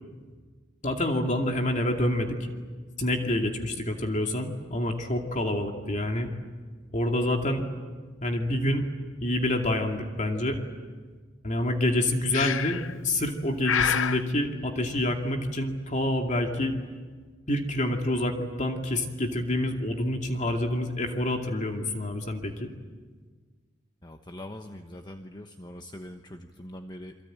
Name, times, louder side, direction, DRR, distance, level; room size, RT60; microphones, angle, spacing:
voice 1, 0.8-2.4 3.0-6.3 6.9-7.6 8.2-8.9 9.2-10.6 11.4-16.7 17.5-22.7, left 1 dB, 40° left, 3 dB, 2.5 m, -27 dB
Breathing, 12.3-12.9 13.6-14.2, left 8 dB, 90° left, 0.8 m, -27 dB
voice 2, 24.0-27.2, left 1 dB, 20° left, 5 dB, 1.1 m, -42 dB
28.5 x 23.0 x 8.9 m, 1.5 s
head